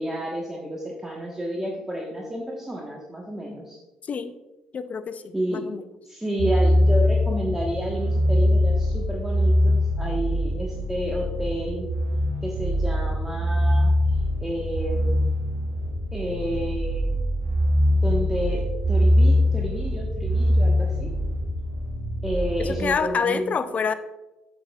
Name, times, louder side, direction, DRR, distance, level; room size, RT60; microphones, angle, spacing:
voice 1, 0.0-3.8 5.3-5.7 6.1-11.9 12.4-13.9 14.4-15.2 16.1-17.1 18.0-21.1 22.2-23.6, right 1 dB, 10° right, -2 dB, 1.3 m, -30 dB
voice 2, 4.0-4.3 4.7-5.8 22.6-23.9, left 6 dB, 40° left, 12 dB, 0.5 m, -27 dB
sound 1, 6.4-22.9, left 1 dB, 75° right, 1.2 m, -23 dB
8.6 x 7.0 x 2.4 m, 1.1 s
hypercardioid pair, 50°, 4 cm